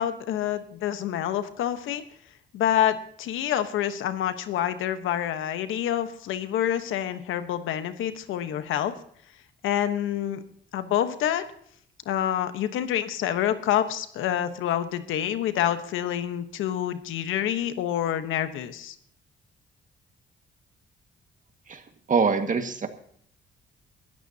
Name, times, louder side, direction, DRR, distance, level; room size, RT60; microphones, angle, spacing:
voice 1, 0.0-2.0 2.5-8.9 9.6-10.4 10.7-11.4 12.1-18.9, left 10 dB, 85° left, 10 dB, 1.2 m, -27 dB
voice 2, 22.1-22.9, right 5 dB, 40° right, 7 dB, 1.8 m, -23 dB
22.0 x 13.0 x 2.9 m, 0.64 s
cardioid pair, 90°, 20 cm